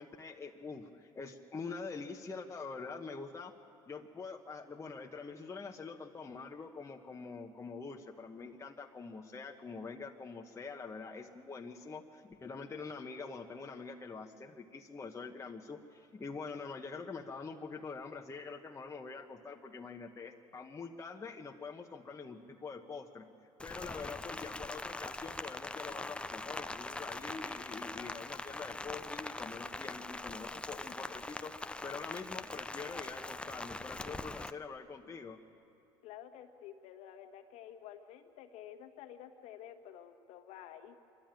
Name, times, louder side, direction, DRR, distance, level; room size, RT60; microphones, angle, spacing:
voice 1, 0.0-3.5 3.9-23.3 23.6-35.4, left 4 dB, 25° left, 1 dB, 1.1 m, -45 dB
Rain, 23.6-34.5, left 2 dB, 10° left, 0.6 m, -42 dB
voice 2, 36.0-41.0, left 10 dB, 75° left, 5 dB, 1.6 m, -51 dB
24.5 x 12.5 x 9.0 m, 2.6 s
supercardioid pair, 90°, 12 cm